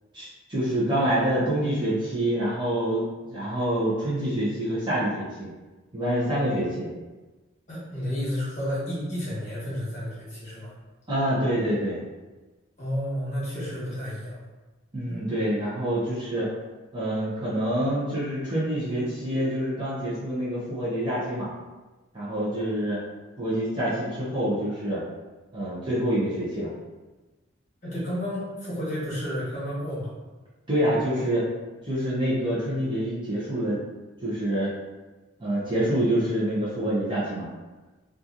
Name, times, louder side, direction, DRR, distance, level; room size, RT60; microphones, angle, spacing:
voice 1, 0.1-5.5 5.9-6.9 11.1-12.0 14.9-16.5 16.9-21.5 22.1-23.0 23.4-25.0 25.5-26.7 30.7-31.4 31.8-33.8 34.2-34.8 35.4-37.4, right 1 dB, 20° right, -10 dB, 0.7 m, -26 dB
voice 2, 7.7-10.7 12.8-14.4 15.1-15.2 27.8-30.1, equal, 35° left, -9 dB, 1.3 m, -31 dB
2.9 x 2.4 x 2.5 m, 1.2 s
head